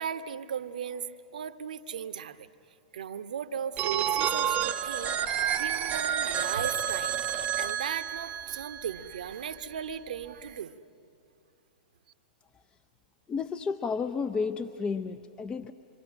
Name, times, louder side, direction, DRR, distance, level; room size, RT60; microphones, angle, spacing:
voice 1, 0.0-2.5 2.9-10.7, right 8 dB, 65° right, 12 dB, 1.0 m, -37 dB
Telephone, 3.8-9.5, right 9 dB, 30° right, 1.0 m, -30 dB
voice 2, 13.3-15.7, left 5 dB, 20° left, 8 dB, 0.7 m, -32 dB
26.5 x 25.5 x 6.3 m, 2.6 s
figure-of-eight pair, 100°, 5 cm